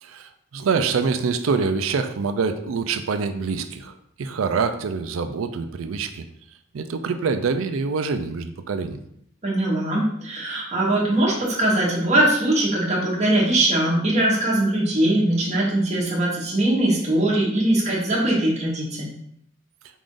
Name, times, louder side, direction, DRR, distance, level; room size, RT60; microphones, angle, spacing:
voice 1, 0.0-6.2 6.7-9.0, right 5 dB, 80° right, 8 dB, 0.4 m, -25 dB
voice 2, 9.4-19.1, right 1 dB, 35° right, -5 dB, 1.1 m, -21 dB
4.9 x 2.5 x 3.7 m, 0.71 s
head